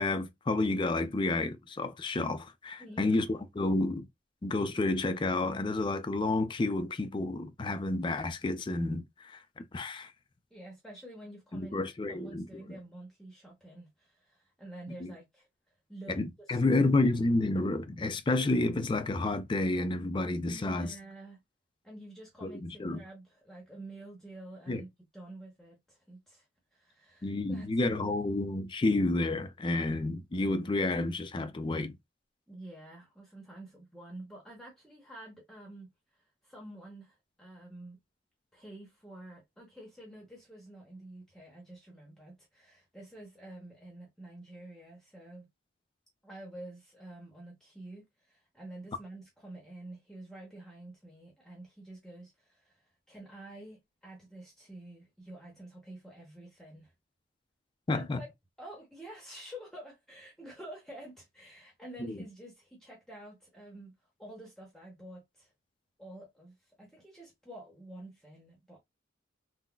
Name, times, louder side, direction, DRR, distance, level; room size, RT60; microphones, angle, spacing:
voice 1, 0.0-4.1 4.4-10.1 11.5-12.6 15.0-15.1 16.1-20.9 22.4-23.0 24.7-24.8 27.2-32.0 57.9-58.2 62.0-62.2, left 2 dB, 25° left, 0.4 m, -30 dB
voice 2, 2.8-3.3 10.5-15.5 15.9-16.9 20.5-21.4 21.8-26.5 26.7-28.1 32.5-35.9 36.4-38.0 38.5-45.5 46.2-56.9 57.9-58.3 58.6-63.9 64.2-65.5 66.0-68.8, right 1 dB, ahead, 0.7 m, -49 dB
3.8 x 2.0 x 2.3 m
head